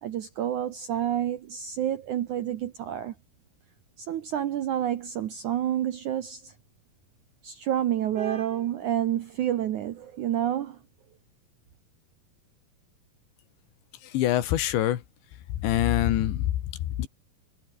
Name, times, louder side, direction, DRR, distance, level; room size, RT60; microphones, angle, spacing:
voice 1, 0.0-3.1 4.0-6.5 7.4-10.8, right 11 dB, 70° right, 1.9 m, -29 dB
voice 2, 14.1-15.0 15.6-16.5 17.0-17.1, left 12 dB, 90° left, 4.1 m, -24 dB
omnidirectional pair, 5.0 m